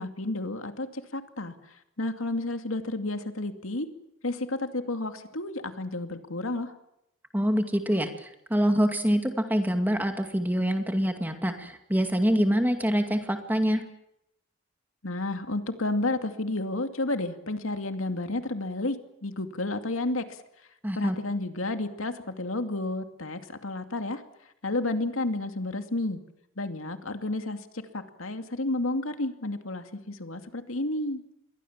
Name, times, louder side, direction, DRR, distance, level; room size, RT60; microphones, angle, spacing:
voice 1, 0.0-1.5 2.0-3.9 4.2-6.7 15.0-19.0 19.2-20.2 21.0-24.2 24.6-26.2 26.6-27.6 27.9-31.2, left 2 dB, 85° left, 7 dB, 2.4 m, -31 dB
voice 2, 7.3-13.8 20.8-21.2, equal, 10° right, 6 dB, 2.2 m, -25 dB
28.0 x 22.5 x 7.4 m, 0.81 s
head